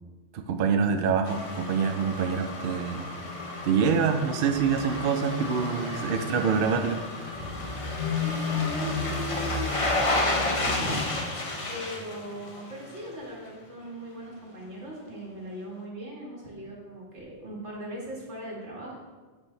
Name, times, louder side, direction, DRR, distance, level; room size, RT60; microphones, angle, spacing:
voice 1, 0.3-3.1 3.6-7.0, right 6 dB, 60° right, 6 dB, 0.7 m, -26 dB
sound 1, 1.3-13.1 13.5-13.6, left 2 dB, 35° left, 0.8 m, -31 dB
voice 2, 8.2-19.0, equal, 90° right, -4 dB, 2.2 m, -39 dB
10.0 x 5.4 x 3.2 m, 1.4 s
omnidirectional pair, 1.1 m